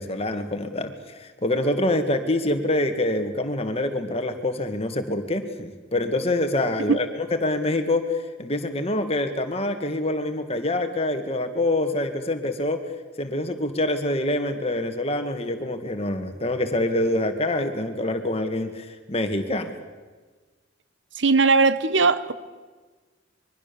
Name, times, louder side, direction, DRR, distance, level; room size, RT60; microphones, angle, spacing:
voice 1, 0.0-12.8 13.2-19.7, left 1 dB, 30° left, 2.0 m, -26 dB
voice 2, 21.2-22.3, right 4 dB, 70° right, 1.1 m, -19 dB
25.5 x 22.5 x 7.1 m
head